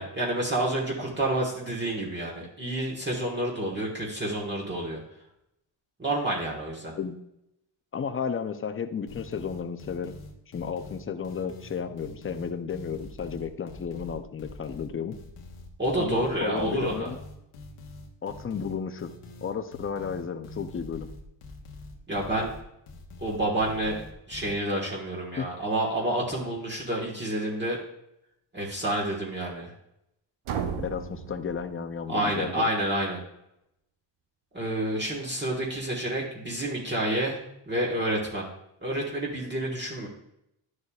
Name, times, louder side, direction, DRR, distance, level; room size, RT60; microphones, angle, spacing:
voice 1, 0.0-5.0 6.0-6.9 15.8-17.1 22.1-22.5 23.2-24.0 24.3-27.8 28.5-29.7 32.1-33.2 34.5-37.4 37.7-38.5 38.8-40.1, right 1 dB, 20° right, -3 dB, 1.4 m, -29 dB
voice 2, 7.9-10.1 10.5-15.2 16.0-17.2 18.2-19.1 19.4-21.1 25.4-25.5 30.8-32.7, left 6 dB, 25° left, 9 dB, 0.5 m, -33 dB
sound 1, 9.1-24.6, left 2 dB, 90° left, 1.3 m, -44 dB
sound 2, 30.4-32.3, right 7 dB, 80° right, 0.9 m, -35 dB
11.0 x 6.5 x 2.4 m, 0.82 s
cardioid pair, 120°, 49 cm